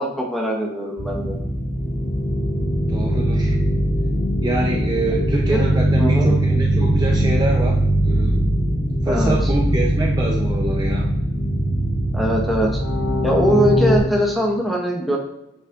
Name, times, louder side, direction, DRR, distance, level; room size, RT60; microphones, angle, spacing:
voice 1, 0.0-1.4 5.4-5.6 6.0-6.3 9.0-9.5 12.1-12.8 13.2-15.2, equal, ahead, -2 dB, 1.1 m, -21 dB
sound 1, 1.0-14.0, right 1 dB, 75° left, 1.7 m, -20 dB
voice 2, 2.9-3.6 4.4-8.5 9.0-11.1, right 1 dB, 20° right, -1 dB, 0.6 m, -25 dB
9.0 x 5.2 x 2.5 m, 0.90 s
head